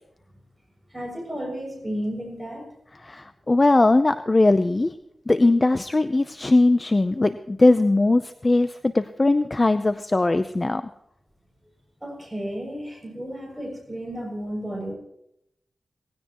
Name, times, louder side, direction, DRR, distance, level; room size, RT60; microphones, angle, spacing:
voice 1, 0.9-2.7 12.0-14.9, equal, 5° right, -1 dB, 6.8 m, -33 dB
voice 2, 3.0-4.9 5.3-10.8, left 2 dB, 25° left, 10 dB, 0.6 m, -20 dB
18.5 x 16.5 x 3.0 m, 0.78 s
wide cardioid pair, 130°, 0 cm